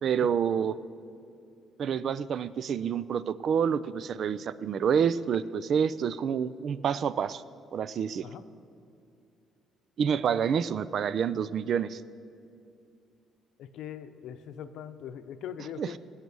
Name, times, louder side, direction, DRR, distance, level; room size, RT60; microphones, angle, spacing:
voice 1, 0.0-0.7 1.8-7.4 7.7-8.3 10.0-12.0 15.8-16.0, right 7 dB, 60° right, 17 dB, 0.4 m, -28 dB
voice 2, 13.6-16.0, left 9 dB, 75° left, 10 dB, 0.7 m, -41 dB
18.5 x 8.2 x 6.2 m, 2.5 s
supercardioid pair, 60°, 0 cm